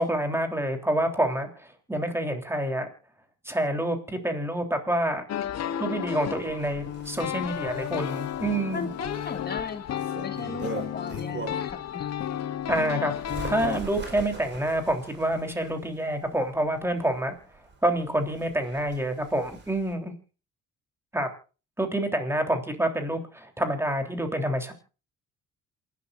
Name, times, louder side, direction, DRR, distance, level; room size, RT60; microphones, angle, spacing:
voice 1, 0.0-1.5 1.9-2.9 3.5-5.3 5.8-8.9 12.7-17.4 17.8-20.1 21.1-21.3 21.8-24.7, right 1 dB, 10° right, 4 dB, 3.5 m, -27 dB
sound 1, 5.3-13.8, left 10 dB, 60° left, 1.0 m, -32 dB
Bird, 6.4-11.8 12.3-19.9, right 4 dB, 40° right, 4.6 m, -42 dB
voice 2, 8.7-12.1, left 4 dB, 35° left, 7 dB, 2.1 m, -37 dB
28.0 x 12.0 x 2.6 m, 0.34 s
cardioid pair, 90°, 30 cm